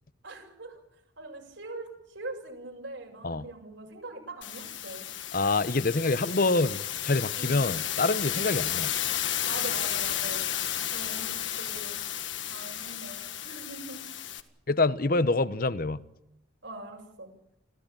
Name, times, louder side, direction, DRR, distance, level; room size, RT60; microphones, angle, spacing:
voice 1, 0.2-0.8 1.2-5.1 7.3-7.7 8.3-8.5 9.4-10.5 10.9-12.0 12.5-14.0 16.6-17.3, right 2 dB, 75° right, 7.3 m, -42 dB
sound 1, 4.4-14.4, left 11 dB, 75° left, 1.8 m, -32 dB
voice 2, 5.3-8.9 14.7-16.0, left 3 dB, 50° left, 0.9 m, -26 dB
26.0 x 16.0 x 9.0 m
head